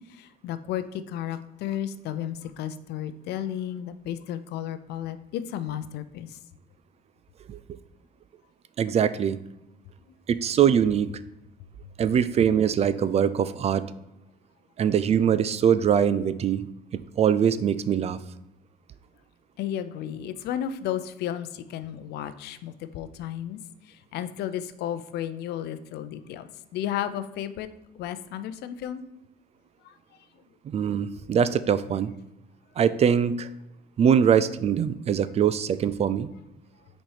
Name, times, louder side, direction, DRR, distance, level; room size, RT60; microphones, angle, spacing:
voice 1, 0.1-6.4 10.1-10.2 19.6-23.6 23.9-27.7 27.9-29.0 29.8-30.0, left 10 dB, 75° left, 12 dB, 0.5 m, -33 dB
voice 2, 8.8-9.4 10.3-11.1 12.0-13.9 14.8-16.7 16.9-18.2 30.7-32.1 32.8-33.5 34.0-36.3, right 8 dB, 40° right, 15 dB, 0.4 m, -22 dB
6.1 x 4.3 x 4.8 m, 0.90 s
cardioid pair, 110°, 17 cm